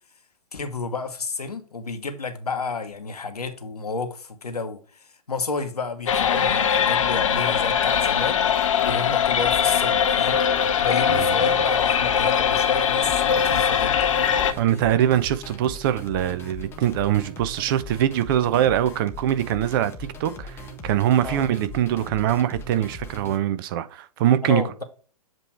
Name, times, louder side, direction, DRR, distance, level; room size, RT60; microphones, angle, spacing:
voice 1, 0.5-8.4 8.8-14.3 21.2-21.5 24.4-24.8, left 4 dB, 75° left, 1.1 m, -31 dB
sound 1, 6.1-14.5, left 8 dB, 55° left, 0.7 m, -21 dB
sound 2, 13.1-23.4, left 1 dB, 10° left, 0.8 m, -40 dB
voice 2, 14.6-24.8, right 11 dB, 35° right, 0.5 m, -23 dB
7.7 x 3.1 x 4.5 m
figure-of-eight pair, 110°, 20 cm